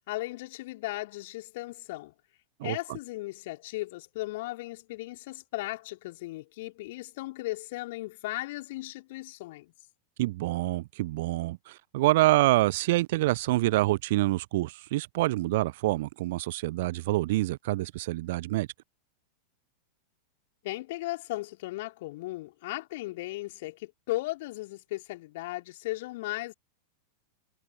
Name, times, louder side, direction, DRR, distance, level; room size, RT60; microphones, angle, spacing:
voice 1, 0.0-2.1 2.6-9.7 20.6-26.5, left 19 dB, 50° left, 3.4 m, -36 dB
voice 2, 10.2-18.7, right 18 dB, 50° right, 0.3 m, -26 dB
figure-of-eight pair, 90°, 0 cm